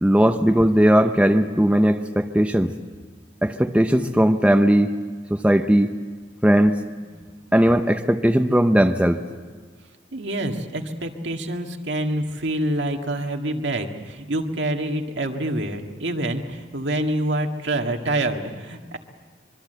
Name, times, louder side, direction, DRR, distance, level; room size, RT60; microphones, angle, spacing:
voice 1, 0.0-2.7 3.4-4.9 5.3-5.9 6.4-6.8 7.5-9.2, equal, 5° right, 7 dB, 0.6 m, -18 dB
voice 2, 10.1-19.0, right 1 dB, 75° right, 3 dB, 1.9 m, -26 dB
25.0 x 23.5 x 7.9 m, 1.5 s
head